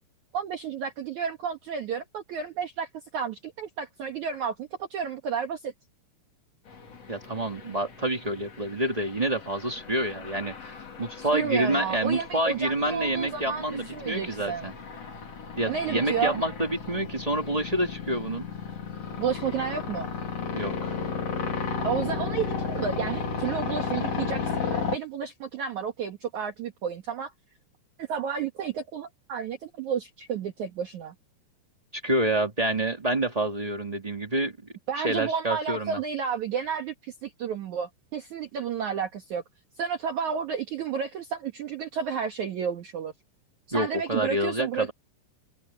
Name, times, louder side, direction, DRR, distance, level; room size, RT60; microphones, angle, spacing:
voice 1, 0.3-5.7 11.2-14.7 15.6-16.4 19.2-20.1 21.8-27.3 28.0-31.1 34.9-39.4 39.8-43.1 43.7-44.9, right 7 dB, 60° right, 2.4 m, -31 dB
sound 1, 6.7-25.0, left 5 dB, 40° left, 3.7 m, -34 dB
voice 2, 7.1-14.7 15.6-18.5 20.5-21.0 31.9-34.5 35.0-36.0 43.7-44.9, right 1 dB, 40° right, 0.5 m, -28 dB
omnidirectional pair, 4.8 m